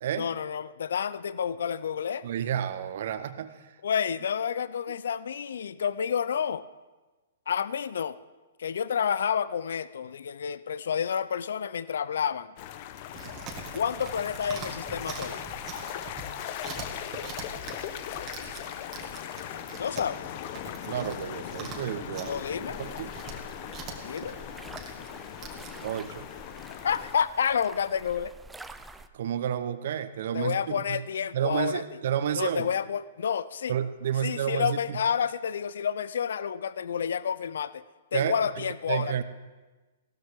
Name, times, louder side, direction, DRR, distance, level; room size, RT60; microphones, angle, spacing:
voice 1, 0.2-2.3 3.8-6.6 7.5-8.2 8.6-12.5 13.7-15.4 19.8-20.2 22.3-22.8 24.0-24.3 26.8-28.3 30.3-31.8 32.3-33.7 34.2-37.8 38.1-39.2, left 7 dB, 75° left, 17 dB, 0.4 m, -29 dB
voice 2, 2.2-3.8 20.9-23.1 25.8-26.2 29.1-31.1 31.3-32.7 33.7-35.0 38.1-39.2, right 9 dB, 60° right, 12 dB, 0.8 m, -31 dB
sound 1, 12.6-27.1, left 11 dB, 45° left, 0.8 m, -39 dB
Chewing mastication, 13.1-26.2, right 4 dB, 30° right, 1.9 m, -43 dB
sound 2, 22.2-29.1, right 2 dB, 5° right, 0.5 m, -47 dB
17.0 x 13.0 x 3.5 m, 1.2 s
hypercardioid pair, 125°, 0 cm